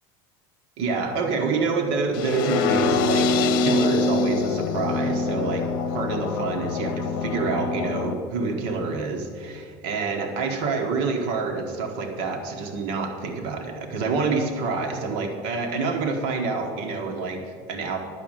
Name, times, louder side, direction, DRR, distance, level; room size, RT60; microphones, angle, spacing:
voice 1, 0.8-18.0, right 4 dB, 55° right, 3 dB, 1.2 m, -27 dB
sound 1, 2.1-8.1, left 4 dB, 80° left, 0.9 m, -24 dB
10.5 x 6.3 x 8.8 m, 2.2 s
cardioid pair, 180°, 11 cm